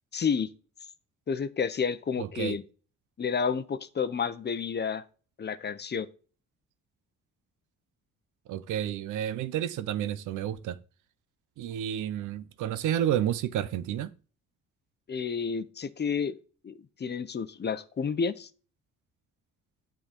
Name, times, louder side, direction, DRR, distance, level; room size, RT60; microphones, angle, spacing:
voice 1, 0.1-0.5 1.3-2.6 3.2-5.0 5.4-6.1 15.1-16.3 16.6-18.5, left 6 dB, 35° left, 0.8 m, -30 dB
voice 2, 2.2-2.6 8.5-10.8 11.6-14.1, right 11 dB, 85° right, 0.7 m, -30 dB
8.8 x 3.9 x 6.6 m
cardioid pair, 90°, 30 cm